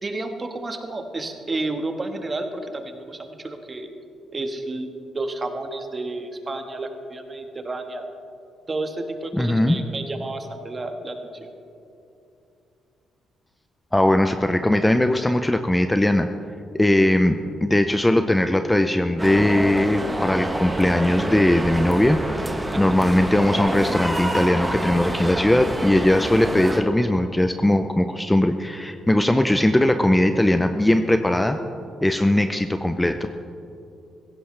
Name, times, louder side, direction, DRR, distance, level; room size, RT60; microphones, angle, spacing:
voice 1, 0.0-3.9 4.3-8.0 8.7-11.5 22.7-23.0, right 2 dB, 30° right, 5 dB, 1.5 m, -31 dB
voice 2, 9.3-9.8 13.9-16.3 16.7-22.5 22.8-31.6 32.0-33.3, left 1 dB, 10° left, 8 dB, 0.6 m, -19 dB
sound 1, 19.2-26.8, right 1 dB, 10° right, 1.2 m, -27 dB
16.0 x 16.0 x 3.3 m, 2.7 s
cardioid pair, 90°, 0 cm